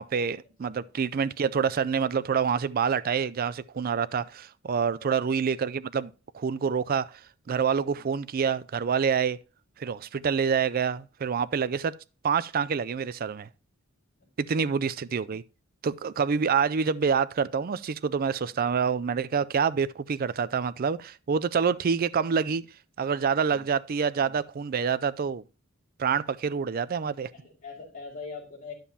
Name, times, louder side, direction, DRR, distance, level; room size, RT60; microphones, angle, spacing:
voice 1, 0.0-7.2 7.5-9.4 9.8-11.9 12.2-13.5 14.4-15.4 15.8-22.6 23.0-25.4 26.0-27.3, right 6 dB, 45° right, 0.4 m, -27 dB
voice 2, 7.8-8.1 14.2-14.3 18.4-18.6 23.3-23.7 27.3-28.7, left 4 dB, 40° left, 4.6 m, -44 dB
10.5 x 7.2 x 2.8 m
head